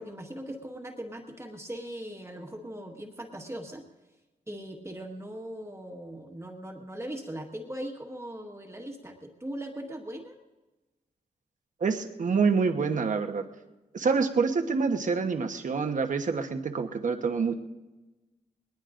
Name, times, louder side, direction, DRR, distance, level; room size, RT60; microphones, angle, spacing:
voice 1, 0.0-3.9 4.5-10.4, right 1 dB, 20° right, 1 dB, 1.6 m, -39 dB
voice 2, 11.8-13.4 13.9-17.6, right 5 dB, 60° right, 6 dB, 1.1 m, -27 dB
20.5 x 20.0 x 2.6 m, 1.1 s
wide cardioid pair, 90°, 15 cm